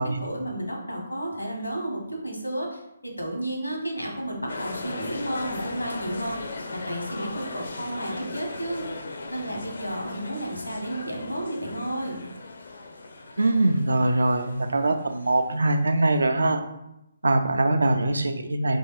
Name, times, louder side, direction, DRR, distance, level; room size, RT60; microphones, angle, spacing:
voice 1, 0.0-9.0 9.3-12.2, right 1 dB, 85° left, 0 dB, 1.1 m, -32 dB
sound 1, 4.5-16.3, left 2 dB, 60° left, 0.5 m, -38 dB
voice 2, 13.4-16.6 17.2-18.8, right 2 dB, 65° right, 7 dB, 0.4 m, -22 dB
3.1 x 2.7 x 4.4 m, 0.85 s
figure-of-eight pair, 140°, 0 cm